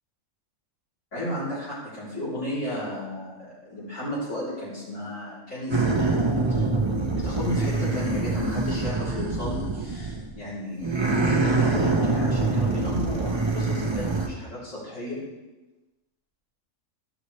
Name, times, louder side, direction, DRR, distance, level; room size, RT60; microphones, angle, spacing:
voice 1, 1.1-6.7 7.1-15.2, left 1 dB, 65° left, -12 dB, 4.0 m, -33 dB
sound 1, 5.7-10.4 10.8-14.3, right 3 dB, 25° right, 0.8 m, -25 dB
14.5 x 6.2 x 3.2 m, 1.1 s
omnidirectional pair, 1.4 m